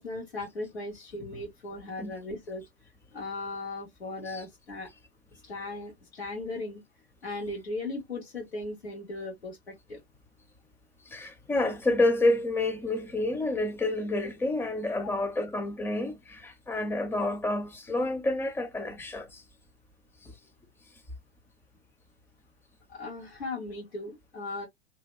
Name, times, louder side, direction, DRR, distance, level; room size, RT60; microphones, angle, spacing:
voice 1, 0.0-2.6 3.1-4.9 5.4-6.8 7.2-10.0 15.0-15.2 22.9-24.7, left 2 dB, 90° left, 1.2 m, -37 dB
voice 2, 11.1-19.4 20.2-20.3, left 2 dB, 5° left, 0.4 m, -29 dB
2.7 x 2.1 x 2.3 m
hypercardioid pair, 100°, 31 cm